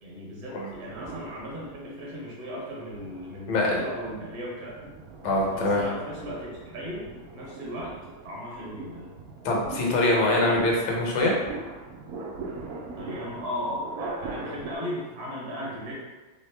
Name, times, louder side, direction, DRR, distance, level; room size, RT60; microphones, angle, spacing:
voice 1, 0.0-4.9 5.5-7.1 7.3-9.1 13.0-15.9, equal, 40° right, -4 dB, 1.1 m, -36 dB
sound 1, 0.7-2.1 2.7-14.7, right 3 dB, 90° right, 0.7 m, -41 dB
voice 2, 3.5-3.8 5.2-5.8 9.4-11.3, left 2 dB, 75° left, -2 dB, 1.7 m, -23 dB
3.5 x 3.5 x 3.3 m, 1.2 s
omnidirectional pair, 2.3 m